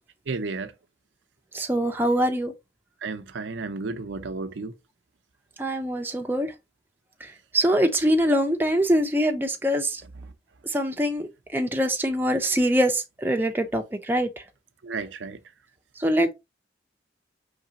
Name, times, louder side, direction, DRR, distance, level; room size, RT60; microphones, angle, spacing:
voice 1, 0.3-0.7 3.0-4.7 14.8-15.4, right 4 dB, 85° right, 0.5 m, -32 dB
voice 2, 1.5-2.5 5.6-6.5 7.2-10.0 10.6-14.3 16.0-16.3, equal, 10° right, 0.5 m, -24 dB
4.8 x 3.3 x 2.7 m
head